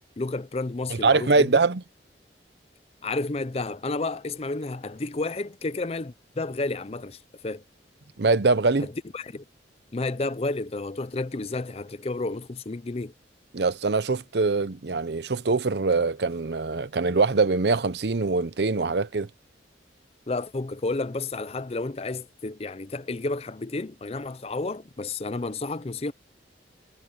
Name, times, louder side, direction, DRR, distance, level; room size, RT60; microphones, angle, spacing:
voice 1, 0.2-1.6 3.0-7.6 8.8-9.4 9.9-13.1 20.3-26.1, left 3 dB, 35° left, 0.5 m, -31 dB
voice 2, 0.9-1.8 8.2-8.9 13.5-19.3, right 3 dB, 65° right, 0.7 m, -23 dB
head